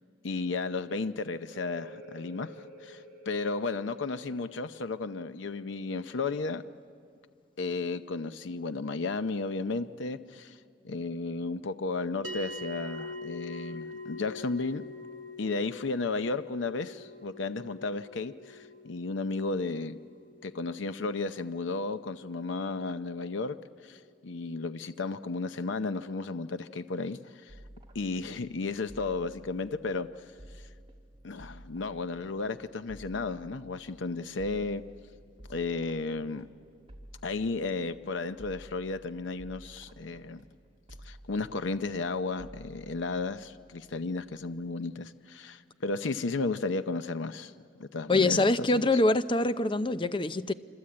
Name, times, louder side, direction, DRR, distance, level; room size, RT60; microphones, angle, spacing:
voice 1, 0.2-2.5 2.8-6.6 7.6-10.6 10.8-14.8 15.4-20.0 20.4-23.6 23.8-27.5 27.9-30.1 31.2-34.8 35.5-36.5 37.2-40.4 41.0-47.5 47.8-49.0, left 3 dB, 75° left, 0.6 m, -33 dB
sound 1, 1.4-6.8, equal, 45° right, 4.6 m, -51 dB
sound 2, 12.2-22.8, left 2 dB, 80° right, 2.0 m, -45 dB
sound 3, 27.5-45.1, right 1 dB, 30° right, 2.3 m, -53 dB
voice 2, 48.1-50.5, left 2 dB, 25° left, 0.6 m, -25 dB
26.0 x 25.5 x 8.7 m
head